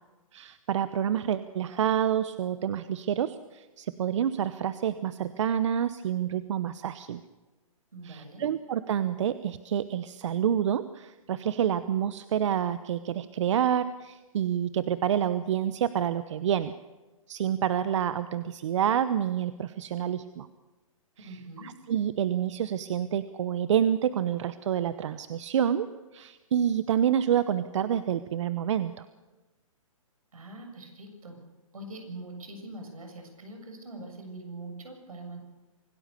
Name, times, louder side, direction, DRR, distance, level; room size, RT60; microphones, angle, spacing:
voice 1, 0.3-7.2 8.0-16.7 17.3-20.5 21.2-21.3 21.6-25.9 26.1-29.0, right 9 dB, 60° right, 13 dB, 0.9 m, -28 dB
voice 2, 7.9-8.4 21.2-21.8 30.3-31.4 31.7-35.4, right 2 dB, 85° right, 4 dB, 7.2 m, -43 dB
26.0 x 17.5 x 6.9 m, 1.2 s
hypercardioid pair, 140°, 18 cm